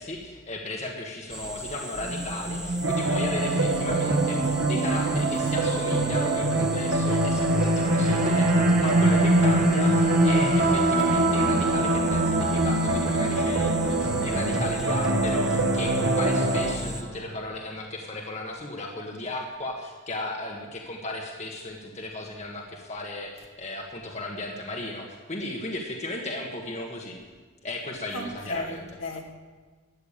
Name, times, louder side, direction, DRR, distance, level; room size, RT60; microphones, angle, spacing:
voice 1, 0.0-27.2 27.6-28.8, left 2 dB, 30° left, 1.4 m, -35 dB
sound 1, 1.3-17.0, right 1 dB, 5° right, 0.8 m, -38 dB
sound 2, 2.0-17.4, right 1 dB, 40° right, 1.5 m, -27 dB
sound 3, 2.8-16.8, right 2 dB, 70° right, 1.5 m, -25 dB
voice 2, 28.1-29.3, left 2 dB, 65° left, 2.0 m, -35 dB
13.5 x 9.3 x 8.7 m
head